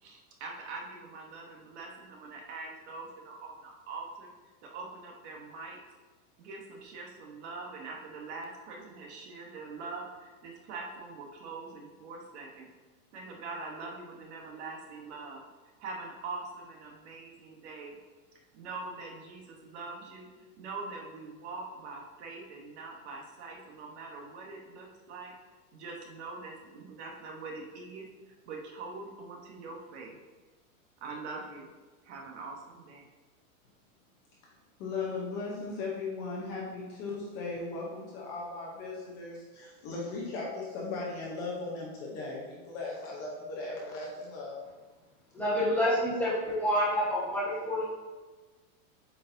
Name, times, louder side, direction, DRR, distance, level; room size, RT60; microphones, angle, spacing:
voice 1, 0.0-4.3 4.6-5.8 6.4-12.7 13.1-15.4 15.8-18.0 18.5-25.3 25.7-28.1 28.5-30.1 31.0-31.7 32.0-33.1, right 3 dB, 45° right, 1 dB, 1.1 m, -43 dB
voice 2, 34.8-44.6, left 3 dB, 25° left, -4 dB, 0.7 m, -37 dB
voice 3, 45.3-47.8, equal, 5° left, -7 dB, 1.1 m, -28 dB
8.1 x 4.3 x 2.6 m, 1.3 s
supercardioid pair, 170°, 45 cm